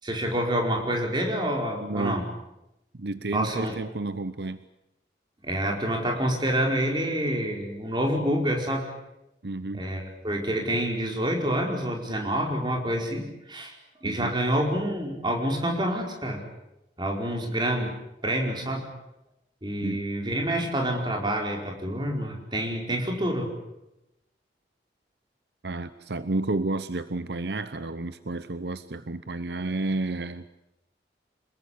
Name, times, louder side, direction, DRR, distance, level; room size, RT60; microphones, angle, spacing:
voice 1, 0.0-2.2 3.3-3.8 5.4-8.9 9.7-13.7 14.0-16.4 17.0-17.9 18.2-18.9 19.6-23.5, right 1 dB, 25° right, 2 dB, 4.8 m, -27 dB
voice 2, 1.8-2.2 2.9-4.6 9.4-9.8 14.0-14.3 19.8-20.1 25.6-30.5, right 2 dB, 70° right, 13 dB, 0.9 m, -31 dB
27.0 x 21.0 x 8.5 m, 0.90 s
head